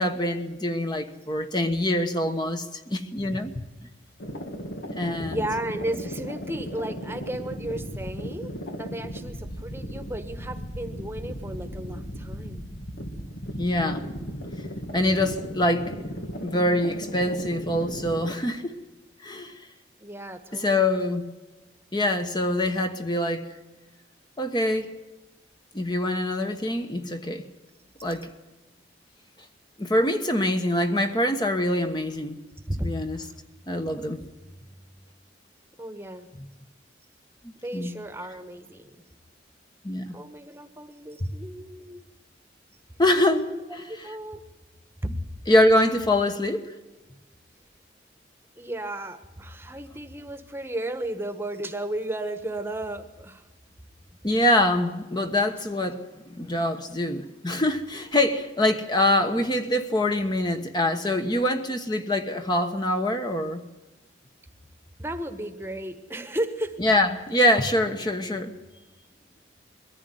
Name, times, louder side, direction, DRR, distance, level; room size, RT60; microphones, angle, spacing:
voice 1, 0.0-3.5 5.0-5.4 13.6-14.1 14.9-15.9 16.4-18.8 19.2-19.6 20.5-21.2 21.9-23.4 24.4-24.9 25.7-27.4 28.0-28.3 29.8-32.4 32.8-33.2 33.7-34.2 37.7-37.9 39.8-40.2 43.0-43.5 45.5-46.7 54.2-56.0 56.3-63.6 66.8-68.5, left 1 dB, 25° left, 1.2 m, -24 dB
sound 1, 4.2-18.3, equal, 75° left, 2.3 m, -36 dB
voice 2, 5.2-12.7 20.0-21.1 32.7-33.4 35.8-36.3 37.6-39.0 40.1-42.0 43.5-43.6 43.9-44.5 45.0-45.1 48.6-53.5 65.0-66.8, right 1 dB, 15° right, 1.3 m, -34 dB
22.5 x 15.0 x 9.3 m
head